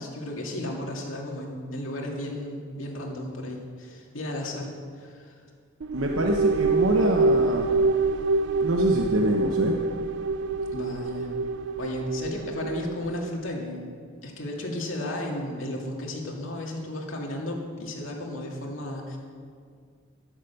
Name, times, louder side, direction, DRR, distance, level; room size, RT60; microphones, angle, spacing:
voice 1, 0.0-5.3 10.7-11.3 11.8-13.9 14.2-19.2, left 1 dB, 85° left, 0 dB, 2.5 m, -34 dB
sound 1, 5.8-13.4, right 3 dB, 65° right, 0.4 m, -26 dB
voice 2, 5.9-7.7 8.6-9.8, right 1 dB, 85° right, 1 dB, 1.0 m, -25 dB
11.5 x 11.0 x 7.0 m, 2.1 s
head